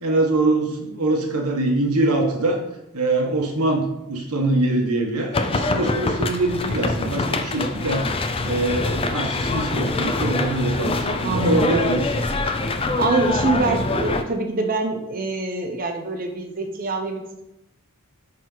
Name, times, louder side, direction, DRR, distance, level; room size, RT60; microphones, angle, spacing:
voice 1, 0.0-2.6 2.9-8.1 8.4-12.0, right 2 dB, 90° right, 1 dB, 1.4 m, -23 dB
sound 1, 5.3-14.2, left 2 dB, 25° left, 0.5 m, -24 dB
voice 2, 11.2-11.8 13.0-17.4, right 2 dB, 40° right, 3 dB, 0.8 m, -24 dB
9.0 x 4.2 x 3.9 m, 0.89 s
head